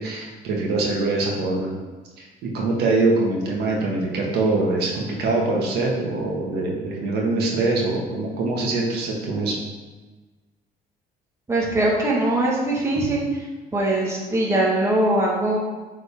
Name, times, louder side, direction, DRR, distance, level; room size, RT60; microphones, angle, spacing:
voice 1, 0.0-1.7 2.2-9.6, right 3 dB, 75° right, -2 dB, 1.7 m, -23 dB
voice 2, 11.5-13.2 13.7-15.6, right 1 dB, 15° right, -5 dB, 1.7 m, -21 dB
8.3 x 4.1 x 3.6 m, 1.3 s
cardioid pair, 110°, 17 cm